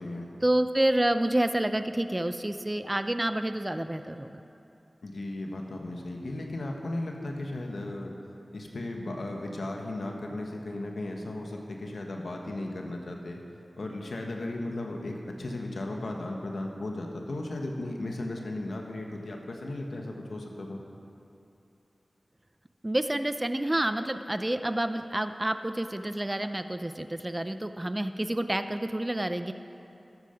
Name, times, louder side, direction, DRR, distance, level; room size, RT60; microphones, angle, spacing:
voice 1, 0.4-4.4 22.8-29.5, right 1 dB, 25° right, 9 dB, 0.6 m, -28 dB
voice 2, 5.0-8.1 8.5-13.4 13.7-20.8, left 2 dB, 80° left, 1 dB, 1.5 m, -36 dB
12.5 x 12.5 x 5.2 m, 2.8 s
cardioid pair, 40°, 0 cm